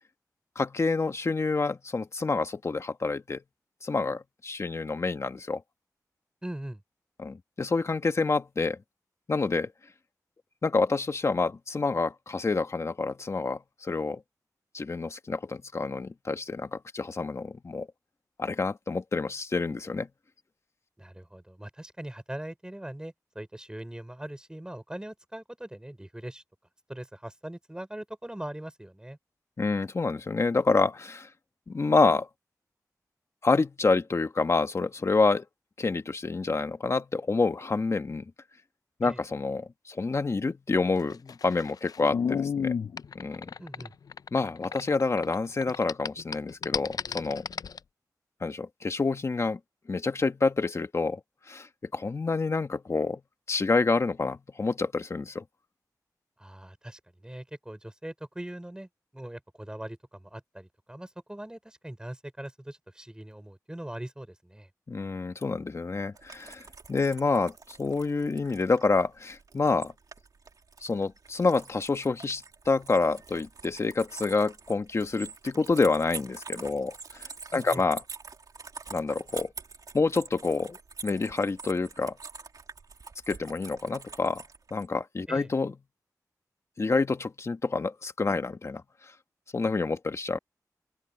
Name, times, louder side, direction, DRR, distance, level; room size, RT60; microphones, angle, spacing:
voice 1, 0.5-3.4 3.8-5.6 7.2-8.8 9.3-9.7 10.6-14.2 14.7-17.9 18.4-20.1 29.6-31.3 31.7-32.3 33.4-35.4 35.8-38.2 39.0-42.8 43.1-43.5 44.3-47.4 48.4-49.6 49.9-51.2 51.5-53.2 53.5-55.4 64.9-69.9 70.8-78.0 78.9-79.5 79.9-80.8 81.0-82.2 83.3-84.4 84.7-85.7 86.8-88.8 89.5-90.4, left 3 dB, 45° left, 1.6 m, -28 dB
voice 2, 6.4-6.8 21.0-26.4 26.9-29.2 39.0-39.2 43.6-43.9 56.4-64.7 77.5-77.8 85.3-85.5, right 1 dB, 10° right, 5.4 m, -41 dB
sound 1, 41.0-45.3 45.6-47.8, left 6 dB, 65° left, 0.4 m, -32 dB
sound 2, 66.1-84.9, right 4 dB, 65° right, 2.7 m, -46 dB
open air
wide cardioid pair, 105°, 7 cm